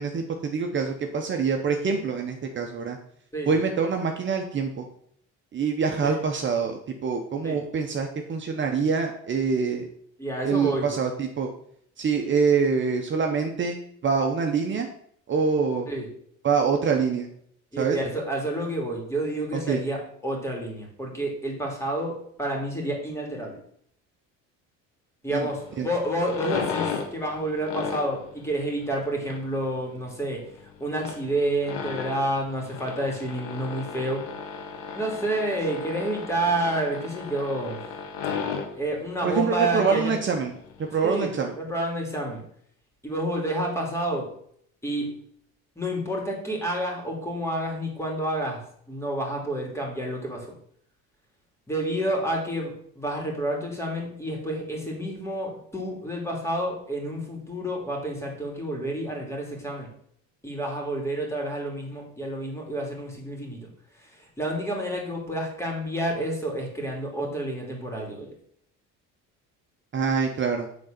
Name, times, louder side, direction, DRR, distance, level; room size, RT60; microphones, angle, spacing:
voice 1, 0.0-3.0 3.5-4.9 5.5-9.9 10.4-11.5 12.0-14.9 15.3-15.9 16.4-17.3 17.8-18.0 19.5-19.8 25.3-25.5 25.8-25.9 39.2-40.5 40.8-41.5 69.9-70.7, right 5 dB, 35° right, 3 dB, 1.0 m, -25 dB
voice 2, 10.2-10.9 15.9-16.1 17.7-23.6 25.2-30.4 30.8-34.2 34.9-37.8 38.7-40.1 41.0-42.4 43.0-44.3 44.8-45.2 45.8-48.6 48.9-50.5 51.7-59.9 60.4-63.7 63.9-68.3, right 1 dB, 10° left, -1 dB, 2.8 m, -29 dB
sound 1, 25.3-41.1, left 6 dB, 90° left, 1.7 m, -36 dB
8.4 x 3.8 x 6.7 m, 0.66 s
cardioid pair, 115°, 32 cm